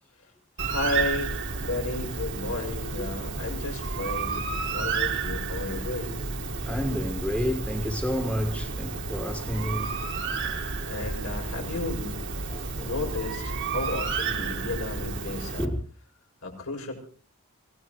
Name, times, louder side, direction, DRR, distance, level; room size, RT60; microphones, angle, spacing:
voice 1, 0.6-6.2 10.9-12.2 12.8-15.7 16.4-16.9, left 2 dB, 75° left, 6.6 m, -33 dB
Bird, 0.6-15.7, right 4 dB, 55° right, 1.6 m, -31 dB
voice 2, 6.7-9.9 12.5-12.9 14.1-14.2 15.6-15.8, equal, 5° left, 1.6 m, -30 dB
26.0 x 18.0 x 3.1 m
head